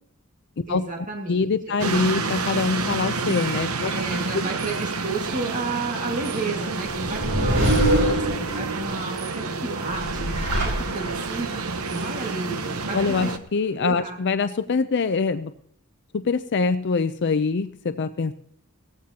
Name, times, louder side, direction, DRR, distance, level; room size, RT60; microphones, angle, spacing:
voice 1, 0.7-1.5 3.8-11.5 11.9-13.3 13.8-14.2, right 3 dB, 40° right, 0 dB, 1.9 m, -32 dB
voice 2, 1.3-3.9 12.9-15.5 16.1-18.3, left 4 dB, 55° left, 11 dB, 0.5 m, -24 dB
sound 1, 1.8-13.4, right 4 dB, 85° right, 1.0 m, -29 dB
sound 2, 6.9-8.9 9.9-11.4, right 1 dB, 70° right, 3.7 m, -23 dB
17.5 x 15.0 x 2.9 m, 0.69 s
head